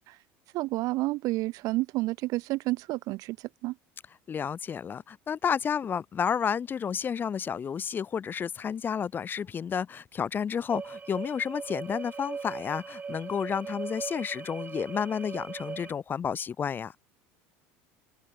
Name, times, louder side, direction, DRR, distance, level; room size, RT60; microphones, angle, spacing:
voice 1, 0.5-3.4 3.6-3.7, right 20 dB, 60° right, 2.9 m, -30 dB
voice 2, 4.3-16.9, left 7 dB, 30° left, 1.4 m, -31 dB
sound 1, 10.7-15.9, right 5 dB, 25° right, 2.7 m, -39 dB
supercardioid pair, 110°, 7 cm